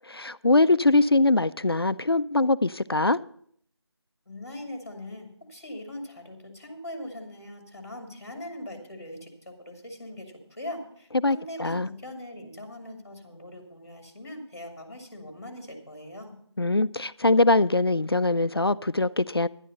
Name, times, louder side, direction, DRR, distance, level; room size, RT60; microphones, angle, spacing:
voice 1, 0.1-3.2 11.2-11.9 16.6-19.5, left 2 dB, 55° left, 0.4 m, -22 dB
voice 2, 4.3-16.4, left 1 dB, 30° left, 2.4 m, -41 dB
11.0 x 9.9 x 5.3 m
figure-of-eight pair, 175°, 15 cm